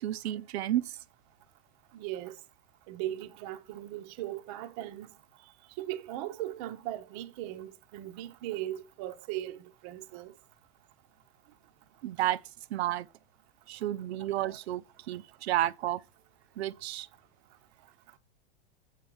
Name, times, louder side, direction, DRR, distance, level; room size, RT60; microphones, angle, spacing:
voice 1, 0.0-1.0 12.0-12.4 12.7-13.1 13.7-16.0 16.6-17.1, right 14 dB, 90° right, 0.5 m, -31 dB
voice 2, 1.9-2.4 2.9-5.1 5.4-5.5 5.8-10.3, right 13 dB, 40° right, 0.5 m, -38 dB
7.5 x 4.3 x 4.6 m
supercardioid pair, 150°, 31 cm